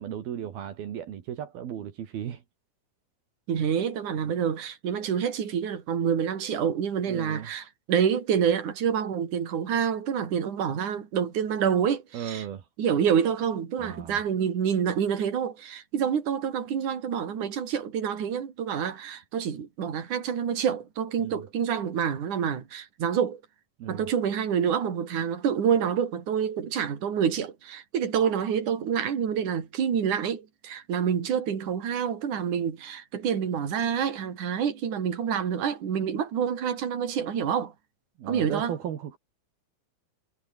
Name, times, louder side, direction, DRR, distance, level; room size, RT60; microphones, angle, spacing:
voice 1, 0.0-2.4 7.1-7.5 12.1-12.6 13.8-14.2 21.2-21.4 23.8-24.1 38.2-39.2, right 9 dB, 75° right, 4.0 m, -35 dB
voice 2, 3.5-12.5 12.8-23.4 23.9-37.7 38.3-38.7, right 8 dB, 55° right, 4.4 m, -27 dB
omnidirectional pair, 4.4 m